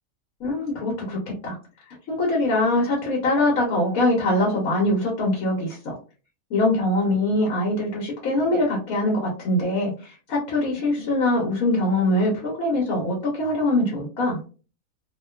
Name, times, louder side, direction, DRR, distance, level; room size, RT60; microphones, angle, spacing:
voice 1, 0.4-1.6 2.1-6.0 6.5-14.4, left 1 dB, 80° left, -2 dB, 1.2 m, -23 dB
2.7 x 2.2 x 2.2 m, 0.36 s
omnidirectional pair, 1.5 m